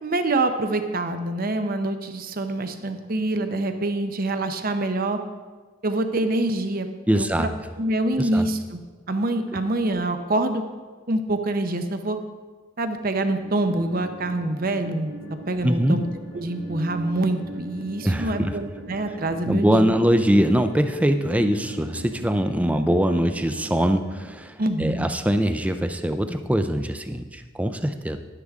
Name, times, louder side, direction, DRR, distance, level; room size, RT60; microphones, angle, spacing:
voice 1, 0.0-5.2 5.8-6.9 7.1-7.5 7.8-8.8 9.1-10.6 11.1-12.2 12.8-15.1 15.5-20.0 24.6-25.1, right 2 dB, 45° right, 7 dB, 0.8 m, -25 dB
voice 2, 7.1-7.5 8.2-8.5 15.6-16.0 18.0-18.5 19.5-28.2, equal, 5° right, 8 dB, 0.4 m, -22 dB
sound 1, 13.4-24.3, right 1 dB, 90° right, 1.7 m, -40 dB
11.0 x 9.9 x 3.6 m, 1.4 s
head